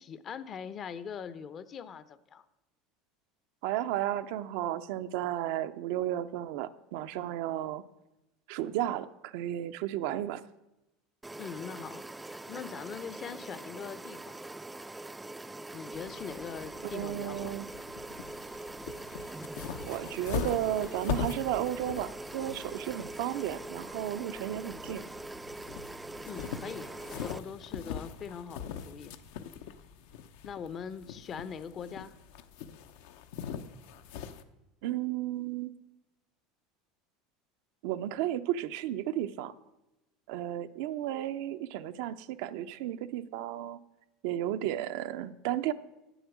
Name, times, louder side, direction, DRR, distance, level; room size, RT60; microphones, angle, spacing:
voice 1, 0.0-2.4 11.4-14.6 15.7-17.6 26.2-29.1 30.4-32.1, left 7 dB, 40° left, 15 dB, 0.6 m, -42 dB
voice 2, 3.6-7.8 8.5-10.4 16.8-17.7 19.8-25.0 34.8-35.8 37.8-39.5 40.3-43.8 44.2-45.7, right 12 dB, 70° right, 11 dB, 0.5 m, -33 dB
sound 1, 11.2-27.4, right 2 dB, 10° right, 0.3 m, -43 dB
sound 2, 15.9-34.4, left 8 dB, 75° left, 0.6 m, -42 dB
8.0 x 8.0 x 6.1 m, 0.96 s
supercardioid pair, 115°, 0 cm